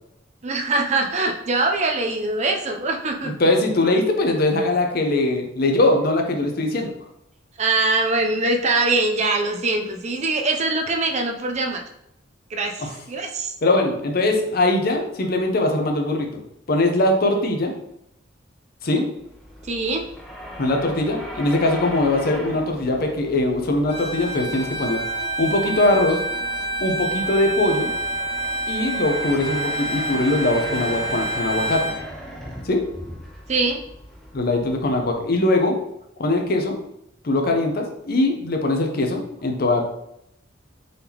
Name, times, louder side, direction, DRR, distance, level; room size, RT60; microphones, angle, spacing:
voice 1, 0.4-3.3 7.6-11.8 12.5-13.5 19.6-20.0 33.5-33.8, right 2 dB, 35° right, 3 dB, 0.5 m, -23 dB
voice 2, 3.2-6.9 12.8-12.9 13.6-16.4 16.7-17.7 18.8-19.1 20.6-25.0 25.4-26.2 26.8-27.9 28.7-31.9 32.6-32.9 34.3-35.8 36.2-36.8 37.2-39.8, left 2 dB, 50° left, 3 dB, 0.7 m, -21 dB
sound 1, 19.2-35.5, equal, ahead, 0.6 m, -39 dB
Bowed string instrument, 23.9-32.0, right 2 dB, 35° left, 1.3 m, -28 dB
3.9 x 3.5 x 2.9 m, 0.78 s
head